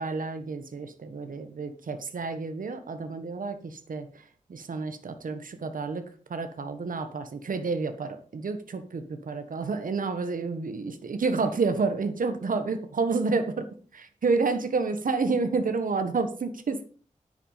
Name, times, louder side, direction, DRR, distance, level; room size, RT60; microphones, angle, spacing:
voice 1, 0.0-6.0 6.3-16.8, right 4 dB, 85° right, 8 dB, 1.5 m, -29 dB
10.5 x 8.3 x 5.7 m, 0.40 s
wide cardioid pair, 90°, 14 cm